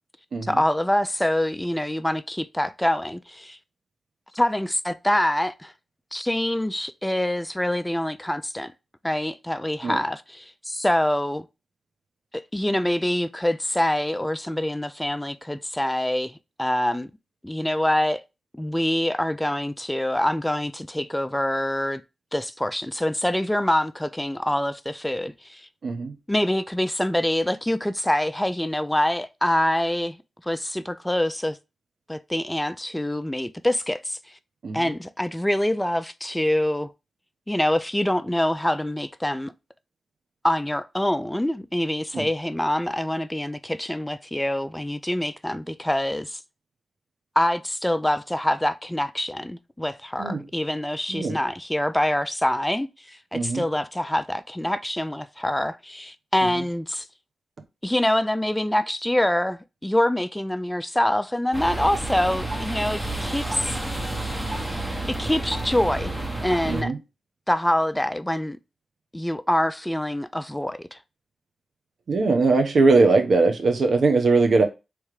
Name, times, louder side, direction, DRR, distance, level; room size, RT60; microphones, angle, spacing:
voice 1, 0.4-3.6 4.3-5.7 6.1-8.7 9.0-11.4 12.5-16.3 16.6-17.1 17.4-18.2 18.6-22.0 22.3-25.7 26.3-30.2 30.4-31.6 32.1-34.2 34.7-36.9 37.5-39.5 40.4-46.4 47.4-57.1 57.8-63.8 65.1-66.1 66.4-66.9 67.5-68.6 69.1-71.0, left 1 dB, 10° left, 0.4 m, -25 dB
voice 2, 25.8-26.1 34.6-34.8 42.1-42.3 50.2-50.4 51.1-51.4 53.3-53.6 66.7-67.0 72.1-74.6, right 3 dB, 65° right, 0.9 m, -20 dB
sound 1, 61.5-66.8, right 2 dB, 10° right, 1.1 m, -30 dB
3.4 x 3.1 x 4.9 m
cardioid pair, 65°, 0 cm